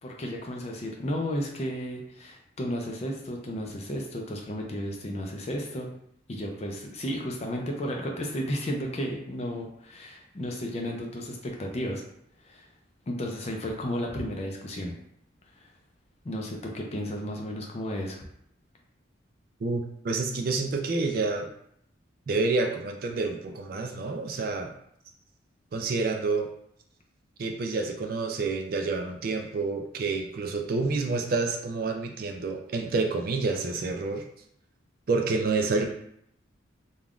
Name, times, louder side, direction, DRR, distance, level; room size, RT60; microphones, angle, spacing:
voice 1, 0.0-5.9 6.3-12.0 12.4-12.7 13.1-15.0 15.6-15.7 16.2-18.2, equal, 30° left, 1 dB, 0.4 m, -33 dB
voice 2, 19.6-21.5 22.3-24.7 25.7-26.5 27.4-34.2 35.1-35.9, right 3 dB, 45° right, 4 dB, 0.3 m, -28 dB
3.4 x 2.3 x 2.4 m, 0.71 s
head